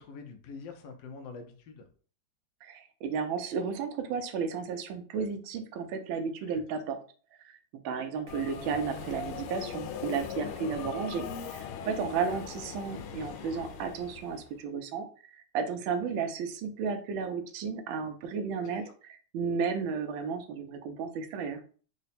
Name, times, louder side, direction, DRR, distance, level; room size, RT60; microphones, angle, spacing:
voice 1, 0.0-1.9 6.5-6.6 12.3-12.4 18.6-18.9, left 4 dB, 75° left, 6 dB, 1.1 m, -46 dB
voice 2, 2.6-7.0 7.4-21.6, right 5 dB, 80° right, 6 dB, 1.4 m, -33 dB
Subway metro underground, 8.3-14.5, left 7 dB, 90° left, 1.4 m, -40 dB
3.8 x 2.1 x 4.1 m, 0.41 s
omnidirectional pair, 2.3 m